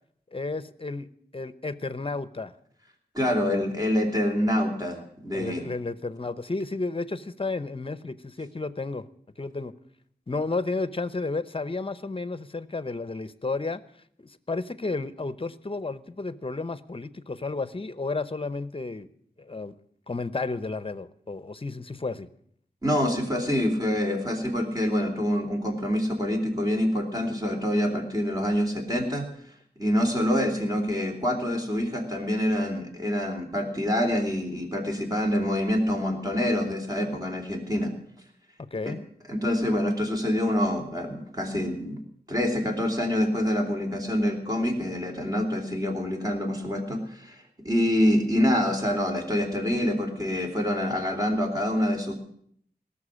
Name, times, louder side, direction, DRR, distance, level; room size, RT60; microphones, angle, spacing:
voice 1, 0.3-1.1 1.3-2.5 5.3-9.1 9.4-9.7 10.3-13.8 14.2-19.1 19.4-19.7 20.1-22.3 38.6-39.0, left 3 dB, 35° left, 15 dB, 0.8 m, -32 dB
voice 2, 3.1-5.7 22.8-29.3 29.8-37.9 38.8-38.9 39.3-42.0 42.3-52.1, equal, 20° right, 2 dB, 3.5 m, -26 dB
18.0 x 7.1 x 9.9 m, 0.66 s
wide cardioid pair, 85°, 16 cm